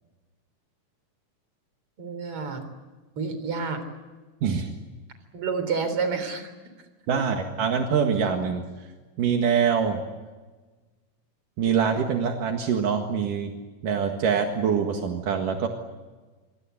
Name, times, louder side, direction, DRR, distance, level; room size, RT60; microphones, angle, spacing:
voice 1, 2.0-2.6 3.2-3.8 5.3-6.5, right 5 dB, 40° right, 9 dB, 4.5 m, -29 dB
voice 2, 4.4-4.7 7.1-8.6 9.2-10.0 11.6-13.5 13.8-15.7, right 6 dB, 75° right, 3 dB, 3.3 m, -24 dB
25.5 x 25.5 x 8.2 m, 1.3 s
omnidirectional pair, 3.9 m